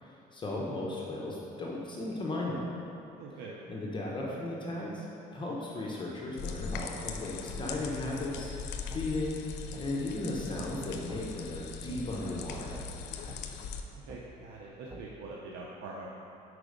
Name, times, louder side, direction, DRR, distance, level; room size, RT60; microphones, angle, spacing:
voice 1, 0.0-2.7 3.7-5.0 5.3-9.4 9.8-12.8, left 2 dB, 30° left, -3 dB, 0.9 m, -36 dB
voice 2, 3.2-3.5 13.9-16.1, right 3 dB, 85° right, -3 dB, 0.7 m, -44 dB
sound 1, 6.4-13.8, left 5 dB, 90° left, 0.5 m, -40 dB
sound 2, 6.7-6.9 7.5-7.7 8.4-8.5 8.9-9.0 9.7-9.9 10.5-10.7 11.1-11.2 11.9-12.0 12.7-12.9 13.3-13.4 14.1-14.2 14.9-15.0, right 3 dB, 15° right, 0.5 m, -46 dB
4.9 x 4.8 x 5.1 m, 2.8 s
cardioid pair, 110°, 17 cm